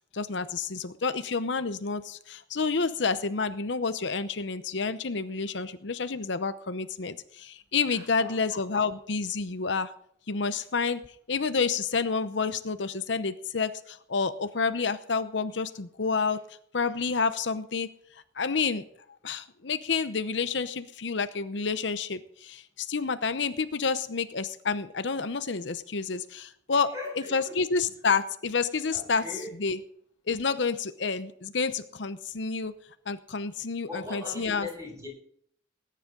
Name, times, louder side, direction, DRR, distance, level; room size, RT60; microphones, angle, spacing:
voice 1, 0.1-9.9 10.3-11.0 11.3-16.4 16.7-17.9 18.4-18.9 19.2-26.9 27.3-29.2 29.6-29.8 30.3-32.7 33.1-34.7, left 4 dB, 70° left, 11 dB, 0.8 m, -29 dB
voice 2, 7.9-8.4 26.7-27.6 28.9-29.6 33.9-35.1, left 2 dB, 15° right, -2 dB, 7.3 m, -40 dB
19.5 x 10.0 x 3.8 m, 0.64 s
head